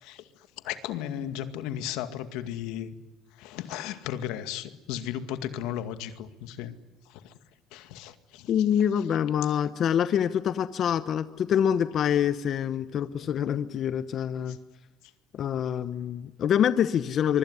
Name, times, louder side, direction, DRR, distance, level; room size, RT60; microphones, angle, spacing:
voice 1, 0.6-2.9 3.4-6.7 7.1-7.3 7.7-8.5 13.2-13.4 14.5-14.6, left 11 dB, 85° left, 10 dB, 2.1 m, -35 dB
voice 2, 8.5-14.6 15.3-17.4, left 9 dB, 45° left, 12 dB, 1.0 m, -26 dB
24.5 x 24.5 x 9.9 m, 1.2 s
cardioid pair, 130°, 0 cm